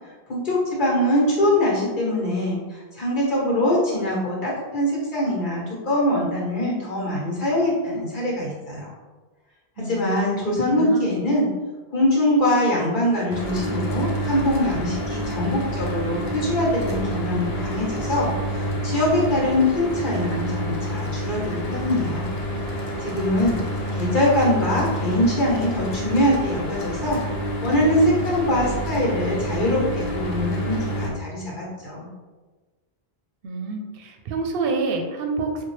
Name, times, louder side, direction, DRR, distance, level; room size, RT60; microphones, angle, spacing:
voice 1, 0.3-8.9 9.8-11.5 11.9-22.2 23.0-27.2 27.6-32.1, left 1 dB, 50° left, -5 dB, 1.3 m, -23 dB
voice 2, 9.8-11.1 33.4-35.6, right 3 dB, 65° right, 3 dB, 0.7 m, -28 dB
Mechanical fan, 13.3-31.1, equal, 75° left, 0.9 m, -28 dB
4.1 x 2.2 x 3.1 m, 1.3 s
omnidirectional pair, 1.1 m